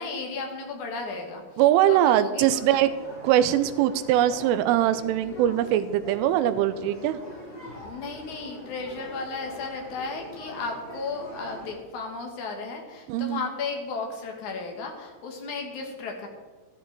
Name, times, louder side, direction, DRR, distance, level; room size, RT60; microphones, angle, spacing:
voice 1, 0.0-1.6 1.9-2.7 7.7-16.3, left 4 dB, 60° left, 2 dB, 2.1 m, -34 dB
voice 2, 1.6-2.9 3.2-7.2 13.1-13.4, right 12 dB, 85° right, 12 dB, 3.2 m, -22 dB
sound 1, 2.4-11.8, left 1 dB, 25° left, 6.0 m, -43 dB
13.5 x 12.5 x 4.7 m, 1.3 s
omnidirectional pair, 5.7 m